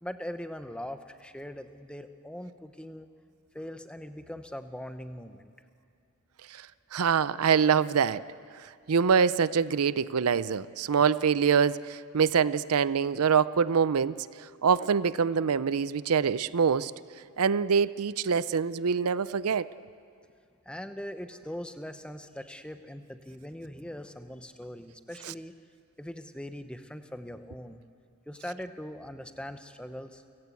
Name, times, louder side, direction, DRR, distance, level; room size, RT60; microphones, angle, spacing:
voice 1, 0.0-3.1 3.5-5.5 20.6-25.5 26.0-27.8 28.3-30.2, equal, 5° left, 8 dB, 0.9 m, -41 dB
voice 2, 6.9-8.2 8.9-14.2 14.6-16.9 17.4-19.7, right 6 dB, 80° right, 17 dB, 0.5 m, -24 dB
29.5 x 16.5 x 8.4 m, 2.4 s
head